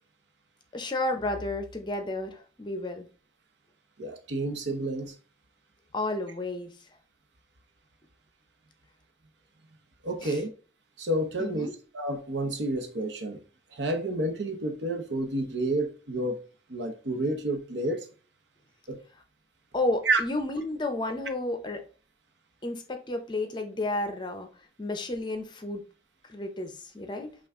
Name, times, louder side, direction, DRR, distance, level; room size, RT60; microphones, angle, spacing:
voice 1, 0.7-3.1 5.9-6.7 10.2-10.4 11.4-11.7 19.7-21.8 22.6-24.5 24.8-25.8 26.3-27.3, left 2 dB, 25° left, 0.6 m, -32 dB
voice 2, 4.0-5.1 10.0-10.5 11.0-11.7 11.9-13.4 13.7-16.4 16.7-18.1 18.9-19.0 20.1-20.2, right 2 dB, 90° right, 0.9 m, -29 dB
5.6 x 2.4 x 3.5 m
head